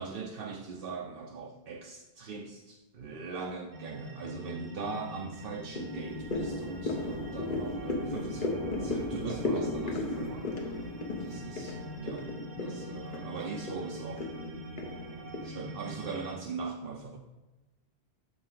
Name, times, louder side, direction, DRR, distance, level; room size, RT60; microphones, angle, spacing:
voice 1, 0.0-10.5 11.2-12.3 12.5-14.3 15.4-17.2, right 4 dB, 60° right, 1 dB, 0.8 m, -40 dB
sound 1, 3.7-16.3, right 1 dB, 80° right, 1.2 m, -44 dB
sound 2, 3.8-4.3 4.8-15.5, left 2 dB, 50° left, 1.0 m, -36 dB
7.1 x 4.9 x 3.8 m, 1.1 s
omnidirectional pair, 1.1 m